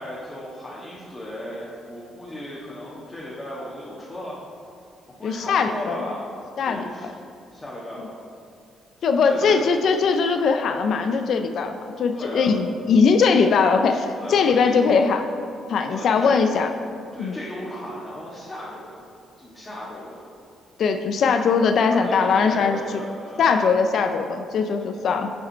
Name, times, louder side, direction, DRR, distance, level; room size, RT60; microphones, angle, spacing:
voice 1, 0.0-4.4 5.2-6.3 6.6-7.1 7.5-8.2 9.2-9.7 12.1-12.7 14.2-14.9 15.9-16.3 17.1-19.0 19.4-20.3 21.9-23.5, left 1 dB, 20° left, -8 dB, 1.5 m, -35 dB
voice 2, 5.2-6.0 6.6-6.8 9.0-15.3 15.7-16.7 17.2-17.4 20.8-22.8 23.4-25.4, left 5 dB, 65° left, 6 dB, 0.4 m, -20 dB
7.3 x 4.9 x 4.5 m, 2.4 s
cardioid pair, 90°, 0 cm